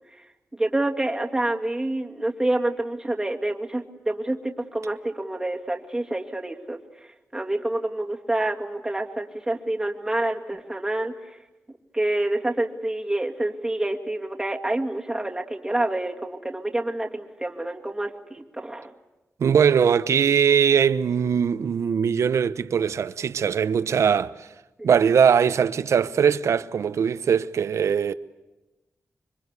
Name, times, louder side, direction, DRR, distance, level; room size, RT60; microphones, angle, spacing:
voice 1, 0.6-6.8 7.3-11.4 11.9-18.9 24.8-24.9, right 1 dB, 10° right, 2.4 m, -27 dB
voice 2, 19.4-24.5 24.8-28.1, right 7 dB, 85° right, 1.0 m, -21 dB
26.0 x 24.5 x 8.3 m
wide cardioid pair, 145°, 5 cm